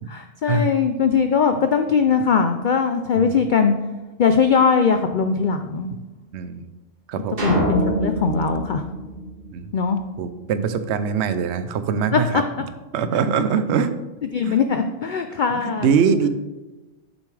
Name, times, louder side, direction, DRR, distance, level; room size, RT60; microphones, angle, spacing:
voice 1, 0.1-3.7 4.2-5.9 7.4-8.8 9.7-10.0 12.1-12.2 14.3-15.9, left 6 dB, 75° left, 7 dB, 0.4 m, -20 dB
voice 2, 6.3-6.7 7.1-7.4 9.5-9.7 10.2-12.4 12.9-13.9 14.4-14.6 15.5-16.3, right 6 dB, 65° right, 11 dB, 0.8 m, -22 dB
sound 1, 7.4-9.9, right 1 dB, 40° right, 2.4 m, -25 dB
9.0 x 6.9 x 3.3 m, 1.1 s
omnidirectional pair, 1.4 m